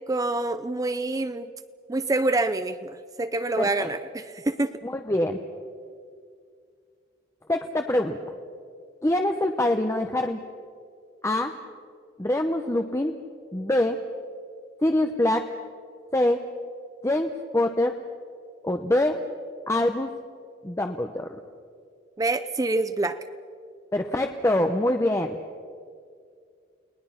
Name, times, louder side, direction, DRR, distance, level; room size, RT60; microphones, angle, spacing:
voice 1, 0.1-1.5 1.9-4.7 22.2-23.2, right 2 dB, 20° right, 11 dB, 0.5 m, -26 dB
voice 2, 3.6-3.9 4.8-5.4 7.5-8.2 9.0-10.4 11.2-11.5 12.2-13.2 13.5-14.0 14.8-15.5 16.1-16.4 17.0-17.9 18.6-19.2 19.7-20.1 20.6-21.4 23.9-25.4, left 1 dB, 15° left, 5 dB, 0.8 m, -24 dB
30.0 x 19.0 x 5.8 m, 2.3 s
head